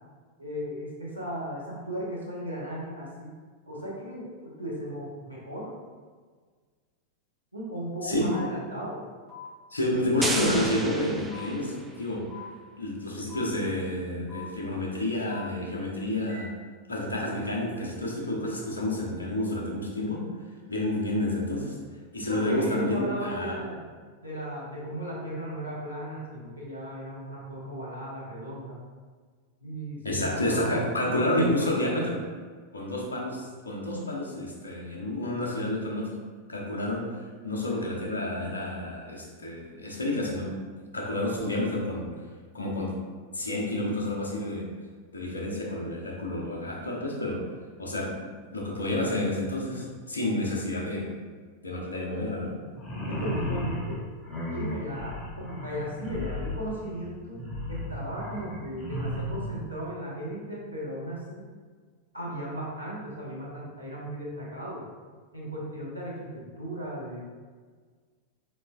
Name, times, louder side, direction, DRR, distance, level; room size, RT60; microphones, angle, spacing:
voice 1, 0.4-3.4 3.7-4.3 4.6-5.7 7.5-9.0 22.2-23.9 24.2-28.8 29.6-31.3 53.1-54.0 54.4-61.4 62.1-64.8 65.3-67.2, right 1 dB, 90° right, -6 dB, 1.0 m, -36 dB
voice 2, 8.0-8.4 9.7-12.4 12.8-16.5 16.9-20.4 20.7-21.8 22.1-23.6 30.0-32.2 32.7-36.1 36.5-40.6 40.9-42.1 42.5-43.0 43.3-44.7 45.1-47.5 47.8-51.1 51.6-52.5, left 1 dB, 75° left, -2 dB, 0.7 m, -29 dB
sound 1, 8.3-8.5 9.3-9.5 10.3-10.5 11.3-11.5 12.3-12.5 13.3-13.5 14.3-14.5 15.3-15.5 16.3-16.5, left 8 dB, 35° right, 1.4 m, -43 dB
sound 2, 10.2-12.0, right 2 dB, 10° right, 0.3 m, -32 dB
sound 3, 52.7-59.6, left 1 dB, 20° left, 0.9 m, -34 dB
4.1 x 3.0 x 2.3 m, 1.5 s
figure-of-eight pair, 90°, 0 cm